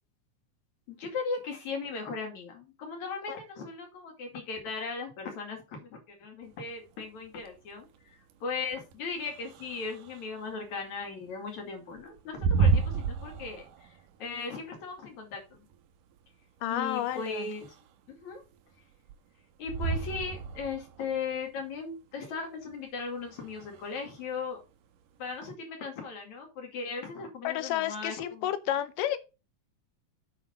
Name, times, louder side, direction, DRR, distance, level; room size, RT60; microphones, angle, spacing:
voice 1, 0.9-15.6 16.7-17.7 18.1-18.4 19.6-24.6 25.2-28.5, left 4 dB, 65° left, 3.6 m, -38 dB
sound 1, 6.4-25.5, right 5 dB, 85° right, 2.5 m, -34 dB
voice 2, 16.6-17.5 27.4-29.2, left 12 dB, 90° left, 2.4 m, -31 dB
8.0 x 5.1 x 5.2 m
omnidirectional pair, 3.7 m